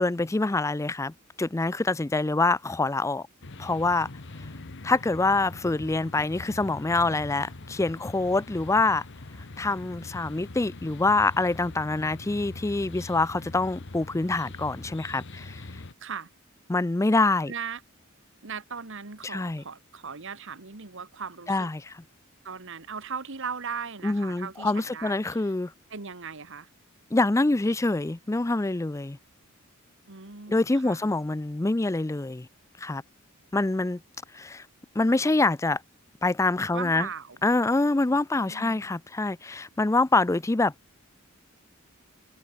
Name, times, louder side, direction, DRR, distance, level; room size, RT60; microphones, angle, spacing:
voice 1, 0.0-3.3 3.6-4.1 4.8-9.0 9.6-15.7 16.7-17.5 19.2-19.6 21.5-21.9 24.0-25.7 27.1-29.2 30.5-32.5 32.8-33.0 33.5-34.0 34.3-34.7 35.0-35.8 36.2-37.1 37.4-40.7, left 2 dB, 15° left, 0.4 m, -25 dB
sound 1, 3.4-15.9, left 2 dB, 60° left, 1.3 m, -43 dB
voice 2, 17.5-17.8 18.4-21.7 22.4-25.5 25.9-26.7 30.1-31.1 36.7-37.4 38.1-38.9, right 6 dB, 60° right, 1.7 m, -38 dB
head